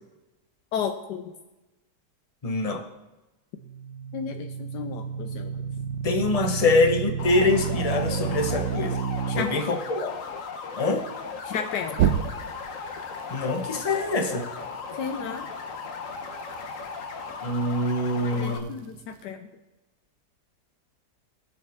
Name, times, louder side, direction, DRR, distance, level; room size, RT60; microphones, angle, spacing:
voice 1, 0.7-1.3 4.1-5.6 9.3-9.7 11.4-12.0 15.0-15.5 18.2-19.4, left 7 dB, 80° left, 5 dB, 1.3 m, -33 dB
voice 2, 2.4-2.8 6.0-9.0 9.3-10.2 10.8-11.0 13.3-14.5 17.4-18.7, left 2 dB, 30° left, 4 dB, 0.8 m, -24 dB
sound 1, 3.6-9.4 11.9-12.7, right 8 dB, 75° right, 1.3 m, -29 dB
sound 2, 7.2-18.6, left 5 dB, 55° left, 1.2 m, -37 dB
20.0 x 6.9 x 3.5 m, 1.1 s
omnidirectional pair, 1.8 m